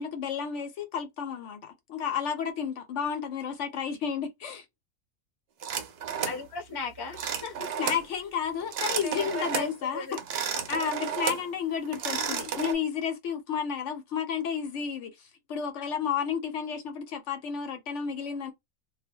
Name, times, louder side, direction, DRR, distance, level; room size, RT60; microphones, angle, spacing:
voice 1, 0.0-4.6 7.8-10.1 10.5-18.5, left 7 dB, 70° left, 0.9 m, -32 dB
sound 1, 5.6-6.4 7.1-8.0 8.6-9.7 10.1-11.5 11.8-12.7, right 7 dB, 60° right, 0.7 m, -32 dB
voice 2, 6.3-7.7 9.0-10.2 12.1-12.5 15.9-16.0, left 4 dB, 25° left, 0.5 m, -37 dB
2.2 x 2.1 x 3.4 m
omnidirectional pair, 1.4 m